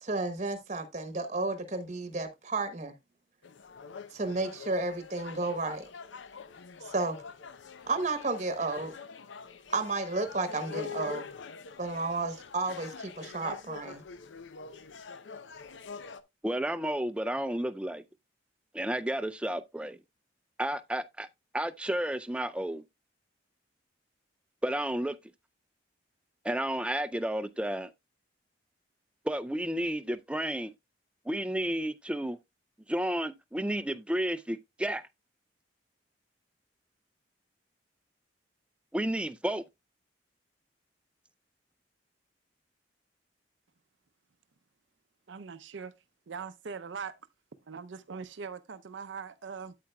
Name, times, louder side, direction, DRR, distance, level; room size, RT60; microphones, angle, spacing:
voice 1, 0.0-2.9 4.1-5.8 6.9-7.2 7.9-9.0 9.7-11.3 11.8-14.0, right 3 dB, 40° right, 1.0 m, -32 dB
sound 1, 3.4-16.2, left 5 dB, 85° left, 0.6 m, -45 dB
voice 2, 16.4-18.0 18.7-20.0 20.6-21.3 21.5-22.8 24.6-25.2 26.4-27.9 29.2-30.7 31.3-32.4 32.9-35.0 38.9-39.6, right 1 dB, 5° right, 0.4 m, -31 dB
voice 3, 45.3-45.9 46.3-47.2 47.7-49.7, right 5 dB, 85° right, 0.6 m, -41 dB
8.7 x 8.4 x 2.2 m
head